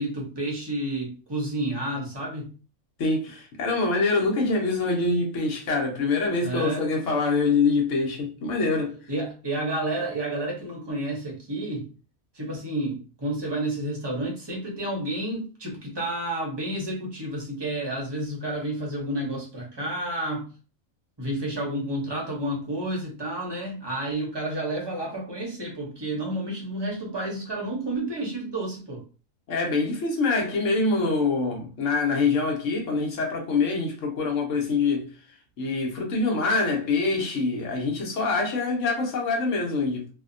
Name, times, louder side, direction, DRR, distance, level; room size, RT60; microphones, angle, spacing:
voice 1, 0.0-2.5 6.4-6.9 9.1-11.9 12.3-20.5 21.2-29.0, right 1 dB, 25° right, 0.6 m, -30 dB
voice 2, 3.0-9.0 29.5-35.1 35.6-40.1, left 3 dB, 70° left, 1.1 m, -25 dB
2.7 x 2.1 x 2.5 m
omnidirectional pair, 1.4 m